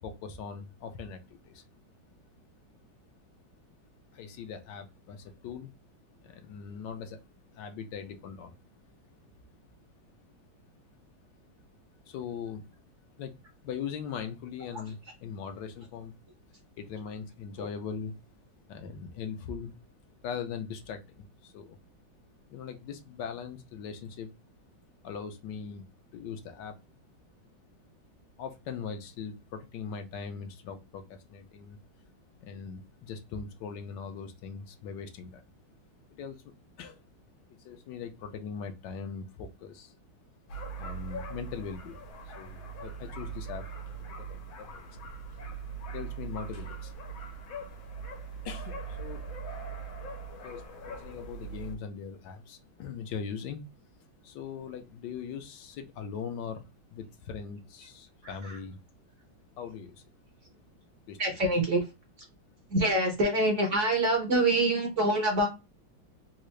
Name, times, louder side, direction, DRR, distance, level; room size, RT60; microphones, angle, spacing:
voice 1, 0.0-1.6 4.1-5.7 6.2-7.2 7.5-8.6 12.1-12.6 13.2-13.3 13.6-16.1 16.8-18.1 18.7-19.7 20.2-21.8 22.5-24.3 25.0-25.9 26.1-26.7 28.4-31.8 32.4-35.4 36.1-36.4 36.8-37.0 37.6-39.9 40.8-42.0 42.4-43.7 44.2-44.9 45.9-46.9 48.4-49.3 50.4-53.6 54.2-58.8 59.6-60.1 61.1-61.2, left 6 dB, 70° left, 7 dB, 1.2 m, -40 dB
sound 1, 40.5-51.8, right 4 dB, 90° left, 1.7 m, -41 dB
voice 2, 58.2-58.6 61.2-61.9 62.7-65.5, right 1 dB, 55° right, 1 dB, 0.9 m, -26 dB
3.7 x 2.4 x 3.1 m, 0.26 s
omnidirectional pair, 2.1 m